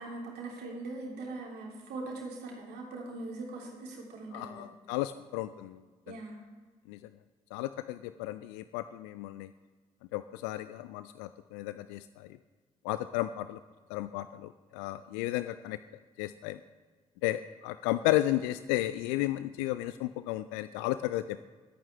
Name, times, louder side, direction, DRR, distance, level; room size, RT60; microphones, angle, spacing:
voice 1, 0.0-4.6 6.0-6.4, right 2 dB, 60° right, -2 dB, 3.2 m, -41 dB
voice 2, 4.3-5.8 6.1-6.2 6.9-7.0 7.5-9.5 10.1-12.3 12.8-13.6 13.9-15.8 16.2-16.6 17.2-21.4, left 15 dB, 65° left, 13 dB, 0.4 m, -33 dB
21.0 x 8.9 x 3.4 m, 1.4 s
figure-of-eight pair, 45°, 19 cm